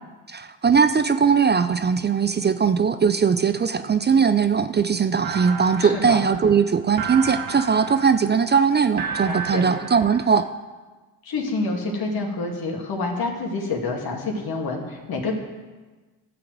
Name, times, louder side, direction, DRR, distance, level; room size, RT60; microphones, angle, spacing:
voice 1, 0.3-10.5, right 6 dB, 25° right, 11 dB, 0.5 m, -20 dB
sound 1, 5.2-10.5, right 6 dB, 65° right, 1.5 m, -33 dB
voice 2, 5.8-6.2 9.3-9.7 11.2-15.3, left 3 dB, 65° left, 1 dB, 2.2 m, -27 dB
12.5 x 4.8 x 7.6 m, 1.3 s
supercardioid pair, 60°, 39 cm